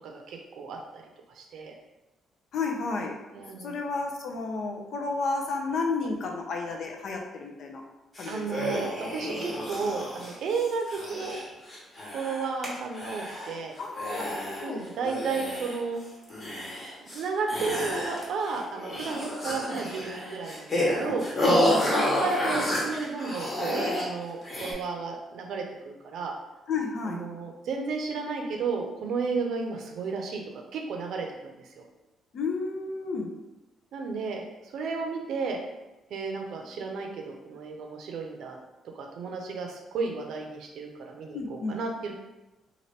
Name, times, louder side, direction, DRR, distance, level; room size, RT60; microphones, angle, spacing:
voice 1, 0.0-1.0 1.3-1.7 3.3-3.7 8.3-11.4 12.1-13.7 14.6-16.0 17.0-21.3 22.0-26.3 27.1-31.7 33.9-34.4 34.7-35.6 36.1-38.6 38.9-42.1, right 4 dB, 75° right, 2 dB, 0.5 m, -33 dB
voice 2, 2.5-3.2 3.6-7.8 8.2-8.8 13.8-14.9 21.3-21.9 26.7-27.2 32.3-33.3 41.3-41.8, left 4 dB, 65° left, 2 dB, 0.5 m, -32 dB
sound 1, 8.1-12.7 12.9-13.6 14.0-14.7 15.0-15.9 16.3-17.2 17.5-18.5 18.8-24.1 24.4-24.7, left 1 dB, 40° left, 1.1 m, -30 dB
2.8 x 2.6 x 3.2 m, 1.0 s
cardioid pair, 90°, 0 cm